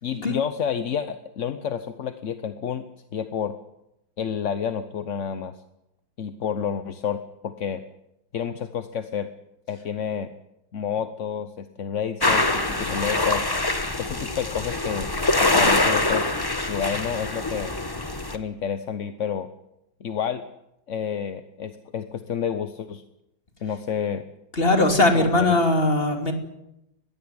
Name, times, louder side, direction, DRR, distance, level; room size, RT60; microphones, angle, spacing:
voice 1, 0.0-2.9 3.1-3.5 4.2-5.6 6.2-7.8 8.3-9.3 9.7-10.3 10.7-13.5 14.0-15.1 15.4-16.3 16.7-17.7 18.3-19.5 20.0-20.4 20.9-23.0 23.6-24.2 25.1-25.6, left 7 dB, 50° left, 10 dB, 1.1 m, -29 dB
sound 1, 12.2-18.4, left 2 dB, 15° left, 1.0 m, -24 dB
voice 2, 24.6-26.3, left 2 dB, 30° left, 5 dB, 3.0 m, -20 dB
20.5 x 16.0 x 9.7 m, 0.86 s
omnidirectional pair, 2.0 m